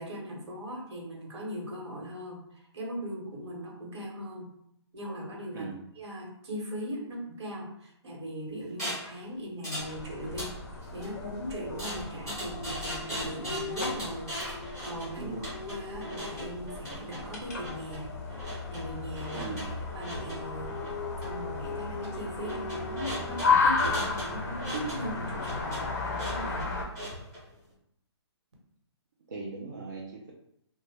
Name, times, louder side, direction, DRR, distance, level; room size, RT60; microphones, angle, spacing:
voice 1, 0.0-4.5 4.9-5.7 6.0-10.5 10.9-14.3 14.8-18.1 18.7-20.7 21.2-26.8, equal, 70° right, -1 dB, 1.1 m, -39 dB
sound 1, 8.8-9.1 9.6-9.9 10.2-11.1 11.8-27.4, equal, 5° right, 0.7 m, -39 dB
sound 2, 9.8-26.9, left 4 dB, 35° left, 0.5 m, -34 dB
Dog, 11.0-16.8 20.0-24.5, left 5 dB, 90° left, 0.4 m, -43 dB
voice 2, 15.2-15.5 19.3-19.7 29.3-30.3, right 3 dB, 45° right, -3 dB, 0.4 m, -39 dB
2.6 x 2.1 x 3.2 m, 0.75 s
hypercardioid pair, 175°, 15 cm